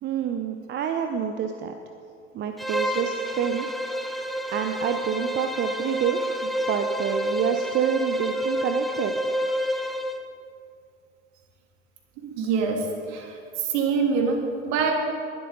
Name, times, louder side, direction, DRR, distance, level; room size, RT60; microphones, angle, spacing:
voice 1, 0.0-1.7 2.3-3.7 4.5-9.1, right 8 dB, 30° right, 6 dB, 0.8 m, -27 dB
Bowed string instrument, 2.6-10.3, equal, ahead, 0.7 m, -29 dB
voice 2, 12.2-13.3 13.7-14.9, right 5 dB, 50° right, 2 dB, 2.7 m, -25 dB
20.5 x 12.0 x 4.1 m, 2.4 s
figure-of-eight pair, 75°, 37 cm